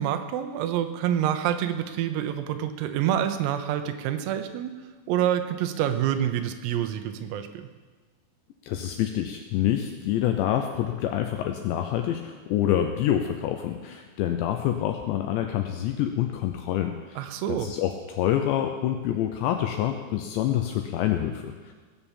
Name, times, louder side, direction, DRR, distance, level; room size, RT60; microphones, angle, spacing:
voice 1, 0.0-4.8 5.1-7.7 17.2-17.7, right 10 dB, 85° right, 8 dB, 3.6 m, -27 dB
voice 2, 8.6-17.2 17.5-21.7, left 11 dB, 85° left, 5 dB, 2.5 m, -27 dB
18.0 x 7.1 x 7.2 m, 1.4 s
omnidirectional pair, 5.9 m